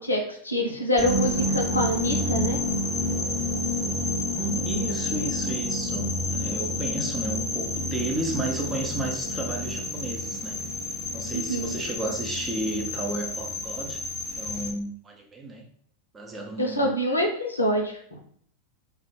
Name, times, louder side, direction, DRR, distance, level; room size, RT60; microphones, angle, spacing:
voice 1, 0.0-2.6 11.3-11.8 16.6-18.0, equal, 80° left, 1 dB, 0.4 m, -26 dB
sound 1, 1.0-14.7, left 1 dB, 15° left, 0.8 m, -29 dB
voice 2, 4.3-10.6 11.1-14.0 14.3-15.7 16.1-16.9, right 2 dB, 15° right, 1 dB, 0.5 m, -33 dB
2.1 x 2.0 x 3.0 m, 0.62 s
figure-of-eight pair, 90°, 0 cm